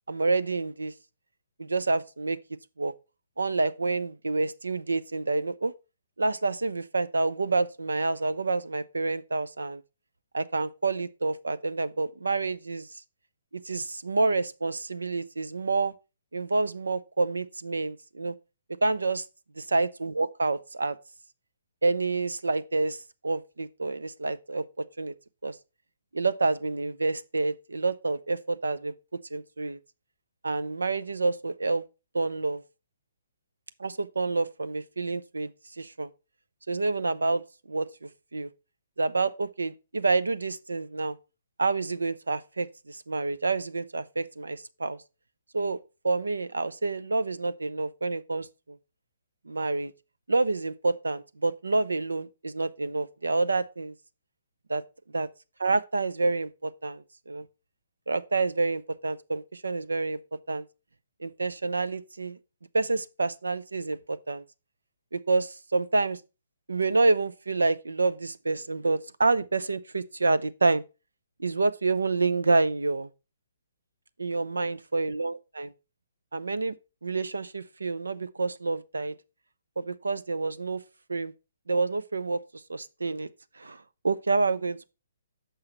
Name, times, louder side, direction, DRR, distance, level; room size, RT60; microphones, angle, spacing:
voice 1, 0.1-0.9 1.6-2.4 2.8-2.9 3.4-5.7 6.2-9.8 10.3-12.9 13.6-15.9 16.3-18.3 18.8-19.2 19.6-21.0 21.8-25.1 25.4-25.6 26.1-28.9 29.3-29.8 30.4-31.8 32.1-32.6 33.8-35.5 35.8-36.1 36.7-37.4 37.7-38.5 39.0-41.2 41.6-45.0 45.5-45.8 46.0-48.8 49.5-49.9 50.3-53.9 54.7-54.8 55.1-55.3 55.6-57.5 58.1-60.2 60.5-60.6 61.2-62.4 62.7-64.4 65.1-66.2 66.7-70.8 71.4-73.1 74.2-75.7 76.3-76.7 77.0-79.1 79.8-80.8 81.1-81.3 81.7-82.4 82.7-83.3 83.6-84.9, right 3 dB, 85° right, 0.6 m, -28 dB
6.8 x 5.7 x 4.4 m
hypercardioid pair, 135°, 0 cm